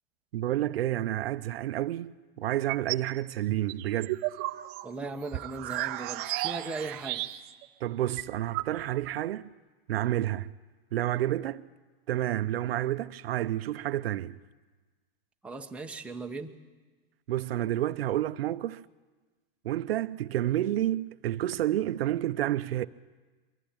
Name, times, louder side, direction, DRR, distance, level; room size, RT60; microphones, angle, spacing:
voice 1, 0.3-4.2 7.8-9.5 9.9-10.5 10.9-11.6 12.1-14.4 17.3-18.8 19.6-22.9, right 13 dB, 75° right, 0.7 m, -30 dB
sound 1, 2.5-3.1 3.5-7.6 7.9-9.1, right 17 dB, 35° right, 0.6 m, -34 dB
voice 2, 4.8-7.3 15.4-16.5, right 3 dB, 5° right, 1.0 m, -38 dB
23.0 x 15.0 x 8.8 m
hypercardioid pair, 135°, 30 cm